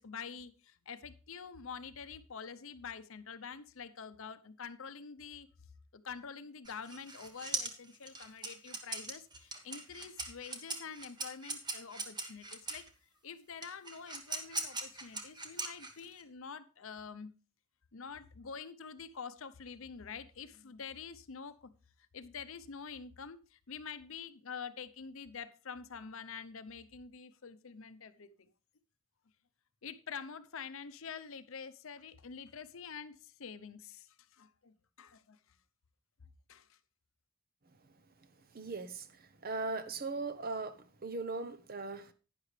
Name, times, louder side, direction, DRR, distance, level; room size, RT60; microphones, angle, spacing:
voice 1, 0.0-5.5 5.9-12.9 13.2-17.3 17.9-21.7 22.1-28.5 29.8-35.4 36.5-36.8, left 6 dB, 65° left, 0.7 m, -47 dB
sound 1, 6.6-12.9 13.6-16.2, right 3 dB, 20° right, 1.2 m, -40 dB
voice 2, 38.5-39.1 39.4-42.1, right 3 dB, 40° right, 0.8 m, -38 dB
11.5 x 9.8 x 3.3 m
head